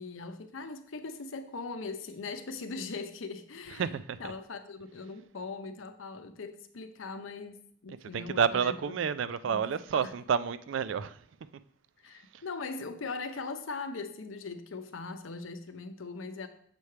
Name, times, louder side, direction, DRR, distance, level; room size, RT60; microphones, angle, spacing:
voice 1, 0.0-3.9 4.2-9.1 9.5-9.6 9.9-10.1 12.0-16.5, left 4 dB, 90° left, 0.7 m, -40 dB
voice 2, 3.7-4.2 8.1-11.2 12.3-12.4, right 7 dB, 70° right, 0.4 m, -30 dB
6.8 x 3.2 x 5.7 m
head